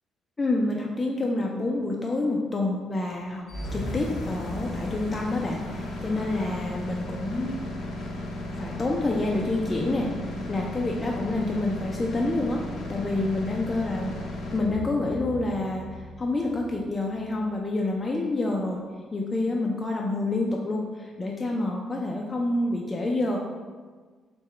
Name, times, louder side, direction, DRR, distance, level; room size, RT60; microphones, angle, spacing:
voice 1, 0.4-3.5 3.7-7.9 8.6-10.1 10.5-12.6 12.9-14.1 14.5-18.8 19.1-23.4, left 2 dB, 25° left, -1 dB, 0.3 m, -28 dB
sound 1, 3.5-17.4, left 1 dB, 85° left, 0.5 m, -35 dB
3.7 x 2.1 x 3.1 m, 1.4 s
cardioid pair, 90°, 0 cm